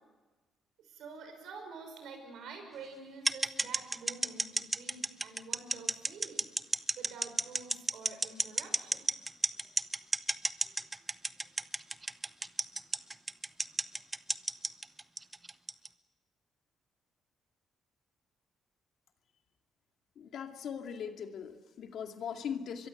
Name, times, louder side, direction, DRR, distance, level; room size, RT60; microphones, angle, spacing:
voice 1, 0.8-6.5 6.9-9.1, right 4 dB, 75° right, 6 dB, 5.7 m, -48 dB
sound 1, 3.3-15.9, right 2 dB, 20° right, 0.8 m, -31 dB
voice 2, 20.2-22.9, left 7 dB, 70° left, 5 dB, 2.3 m, -40 dB
24.5 x 22.5 x 8.0 m, 1.2 s
cardioid pair, 90°, 0 cm